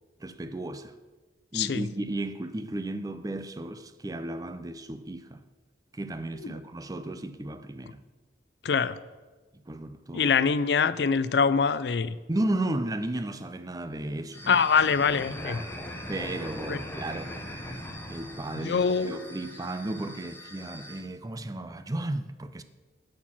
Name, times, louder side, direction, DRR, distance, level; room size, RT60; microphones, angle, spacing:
voice 1, 0.2-0.9 1.5-5.4 5.9-8.0 9.7-10.3 12.3-14.6 15.4-15.7 16.1-17.4 18.1-22.6, right 1 dB, 20° right, 0.5 m, -34 dB
voice 2, 1.5-1.8 8.6-9.0 10.1-12.1 14.5-15.6 16.7-16.8 18.5-19.3, left 6 dB, 70° left, 0.4 m, -24 dB
sound 1, 14.3-21.0, left 1 dB, 15° left, 1.1 m, -41 dB
11.5 x 4.4 x 7.2 m
head